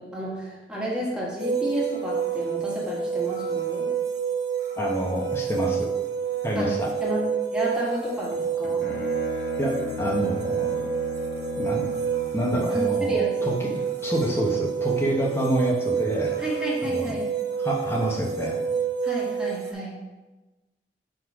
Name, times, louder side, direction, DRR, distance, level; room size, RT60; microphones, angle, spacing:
voice 1, 0.0-3.9 6.5-6.7 7.0-7.2 7.5-8.9 12.7-13.5 16.4-17.3 19.0-19.9, equal, 5° right, -6 dB, 1.5 m, -31 dB
sound 1, 1.4-19.7, right 7 dB, 70° right, 1.1 m, -28 dB
voice 2, 4.8-5.9 6.4-6.9 9.6-10.8 11.6-11.8 12.3-13.7 14.0-16.4 16.8-17.1 17.6-18.6, equal, 15° left, -2 dB, 1.0 m, -27 dB
Bowed string instrument, 8.3-12.5, left 3 dB, 65° left, 1.1 m, -36 dB
6.5 x 3.9 x 4.8 m, 1.1 s
head